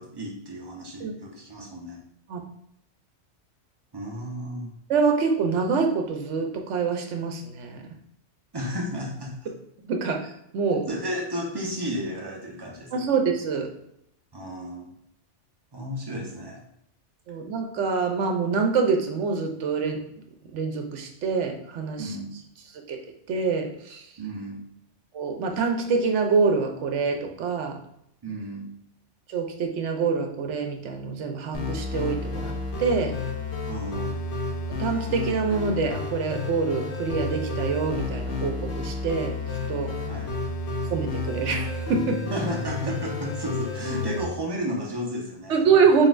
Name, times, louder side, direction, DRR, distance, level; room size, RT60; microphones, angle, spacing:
voice 1, 0.0-2.0 3.9-4.7 8.5-9.4 10.9-12.9 14.3-14.9 15.7-16.6 22.0-22.3 24.2-24.6 28.2-28.7 33.7-34.2 40.1-40.3 42.3-45.6, equal, 25° right, -1 dB, 0.7 m, -33 dB
voice 2, 4.9-7.8 9.8-10.9 12.9-13.7 17.3-20.0 20.5-22.1 22.9-23.0 23.3-24.0 25.1-27.8 29.3-32.5 32.8-33.1 34.8-39.4 39.7-39.9 40.9-42.2 45.5-46.1, right 5 dB, 75° right, 4 dB, 1.0 m, -25 dB
sound 1, 31.5-44.2, left 3 dB, 70° left, 1.1 m, -31 dB
4.0 x 3.8 x 2.5 m, 0.75 s
omnidirectional pair, 1.2 m